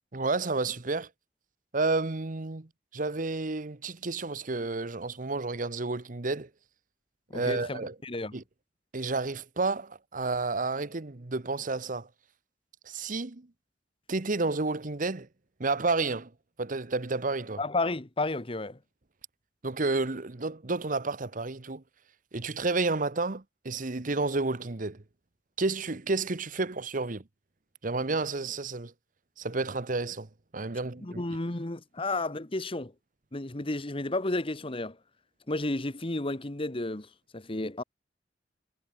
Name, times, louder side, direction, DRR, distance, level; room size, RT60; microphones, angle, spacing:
voice 1, 0.1-1.1 1.7-2.7 2.9-6.5 7.3-7.9 8.3-8.4 8.9-12.1 12.9-13.5 14.1-15.3 15.6-16.3 16.6-17.6 19.6-21.8 22.3-25.0 25.6-27.2 27.8-28.9 29.4-30.3 30.5-31.2, right 3 dB, 45° right, 1.1 m, -30 dB
voice 2, 7.3-8.3 17.6-18.8 31.0-32.9 33.3-35.0 35.5-37.8, left 2 dB, 30° left, 1.3 m, -32 dB
head